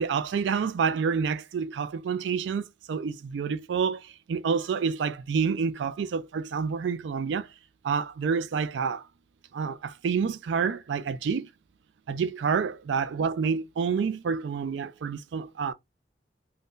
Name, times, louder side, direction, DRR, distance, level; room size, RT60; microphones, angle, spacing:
voice 1, 0.0-7.5 7.8-9.1 9.5-11.5 12.1-15.7, right 6 dB, 85° right, 0.4 m, -28 dB
2.6 x 2.1 x 3.5 m
head